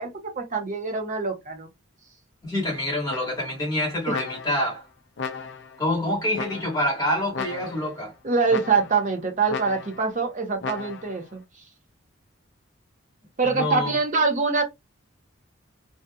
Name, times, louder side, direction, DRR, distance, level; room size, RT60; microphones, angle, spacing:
voice 1, 0.0-1.7 8.2-11.4 13.4-14.6, right 4 dB, 40° right, 0.7 m, -24 dB
voice 2, 2.4-4.8 5.8-8.1 13.5-13.9, left 1 dB, 20° left, 1.4 m, -26 dB
sound 1, 3.1-3.6 4.1-4.7 5.2-5.8 6.3-6.9 7.3-8.0 8.5-9.1 9.5-10.1 10.6-11.2, left 5 dB, 60° left, 0.4 m, -35 dB
2.7 x 2.4 x 2.3 m
head